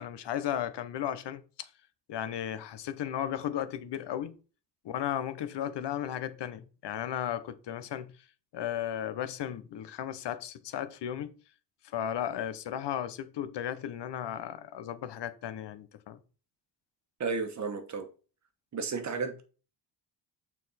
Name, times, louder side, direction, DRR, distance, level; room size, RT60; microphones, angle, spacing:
voice 1, 0.0-1.7 2.1-4.4 4.8-8.1 8.5-11.3 11.8-16.2, left 10 dB, 75° left, 0.9 m, -35 dB
voice 2, 17.2-18.1 18.7-19.4, right 4 dB, 40° right, 1.3 m, -33 dB
8.4 x 4.5 x 4.2 m
wide cardioid pair, 175°, 42 cm